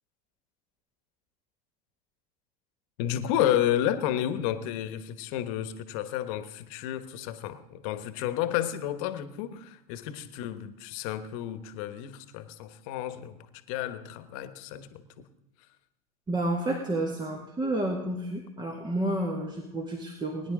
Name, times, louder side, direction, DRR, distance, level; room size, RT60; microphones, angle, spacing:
voice 1, 3.0-13.4 13.7-15.0, left 11 dB, 60° left, 12 dB, 1.3 m, -31 dB
voice 2, 16.3-20.5, right 1 dB, 20° right, 2 dB, 2.0 m, -30 dB
22.0 x 10.5 x 3.7 m, 0.95 s
hypercardioid pair, 90°, 20 cm